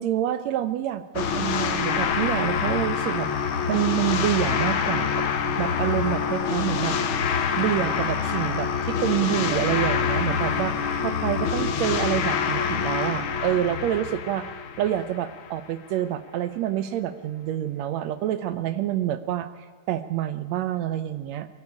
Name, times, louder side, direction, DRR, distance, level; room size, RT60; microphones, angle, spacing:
voice 1, 0.0-3.3 3.7-5.3 5.6-7.0 7.6-10.7 11.0-14.5 14.8-19.5 19.9-21.5, right 12 dB, 80° right, 13 dB, 1.6 m, -27 dB
sound 1, 1.1-15.5, left 6 dB, 60° left, 1.4 m, -26 dB
23.5 x 11.5 x 9.7 m, 1.6 s
omnidirectional pair, 3.8 m